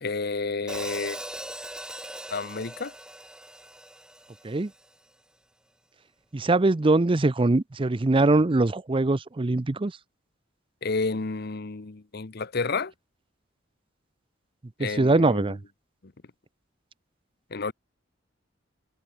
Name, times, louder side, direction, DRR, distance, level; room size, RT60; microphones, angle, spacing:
voice 1, 0.0-1.2 2.3-2.9 10.8-12.9 14.8-15.5 17.5-17.7, left 4 dB, 55° left, 0.9 m, -30 dB
Hi-hat, 0.7-4.9, right 1 dB, 5° right, 2.3 m, -40 dB
voice 2, 6.3-9.9 14.8-15.6, right 2 dB, 25° right, 0.6 m, -22 dB
head